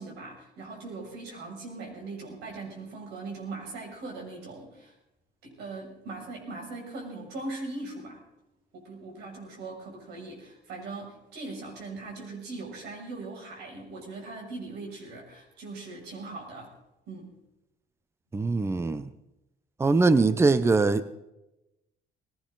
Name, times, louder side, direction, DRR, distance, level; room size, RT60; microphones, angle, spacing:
voice 1, 0.0-4.9 5.4-8.2 8.7-16.7 17.1-17.3, right 3 dB, 80° right, 0 dB, 6.4 m, -40 dB
voice 2, 18.3-19.0 19.8-21.1, right 3 dB, 15° right, 14 dB, 0.7 m, -22 dB
20.0 x 16.5 x 3.9 m, 0.92 s
cardioid pair, 110°, 17 cm